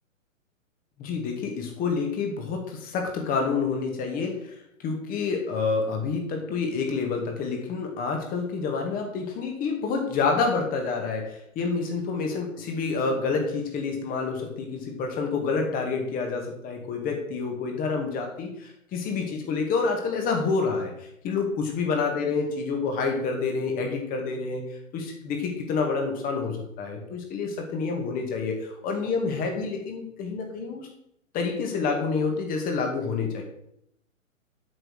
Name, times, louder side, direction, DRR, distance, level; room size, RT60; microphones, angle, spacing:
voice 1, 1.0-4.5 4.8-30.9 31.3-33.4, left 4 dB, 20° left, 3 dB, 2.1 m, -28 dB
8.1 x 6.9 x 6.5 m, 0.74 s
figure-of-eight pair, 125°, 40 cm